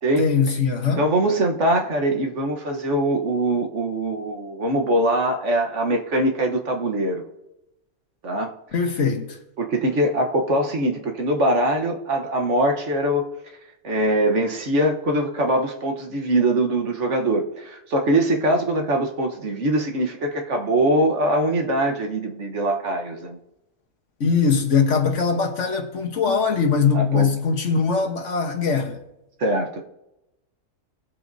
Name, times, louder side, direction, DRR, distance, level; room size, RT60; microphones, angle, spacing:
voice 1, 0.2-1.1 8.7-9.4 24.2-29.0, left 5 dB, 60° left, 1.5 m, -21 dB
voice 2, 1.0-7.2 8.2-8.5 9.6-13.2 13.8-23.4 26.9-27.3 29.4-29.8, right 1 dB, 55° right, 1.5 m, -22 dB
20.5 x 7.8 x 2.7 m
omnidirectional pair, 1.5 m